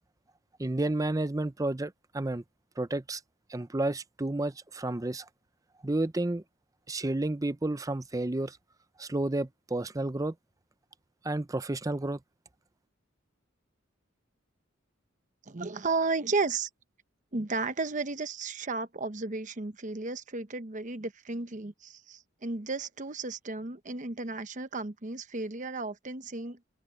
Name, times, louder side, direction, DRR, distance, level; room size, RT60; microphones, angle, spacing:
voice 1, 0.6-2.4 2.8-3.2 3.5-5.3 5.8-6.4 6.9-8.6 9.0-10.3 11.2-12.2, right 2 dB, 15° right, 0.5 m, -31 dB
voice 2, 15.5-16.7 17.3-26.6, right 3 dB, 40° right, 0.9 m, -33 dB
open air
head